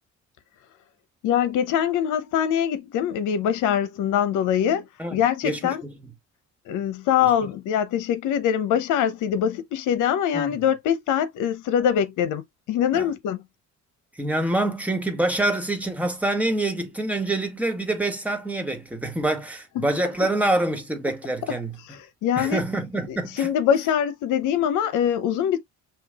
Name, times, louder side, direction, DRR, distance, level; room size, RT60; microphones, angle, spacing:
voice 1, 1.2-4.8 5.1-5.8 6.7-13.4 19.8-19.9 21.9-22.6 23.1-25.6, left 9 dB, 90° left, 0.7 m, -23 dB
voice 2, 5.4-5.9 10.3-10.5 12.9-13.1 14.2-21.8 22.4-23.5, right 2 dB, 5° right, 1.9 m, -26 dB
5.8 x 2.7 x 2.8 m
cardioid pair, 90°, 30 cm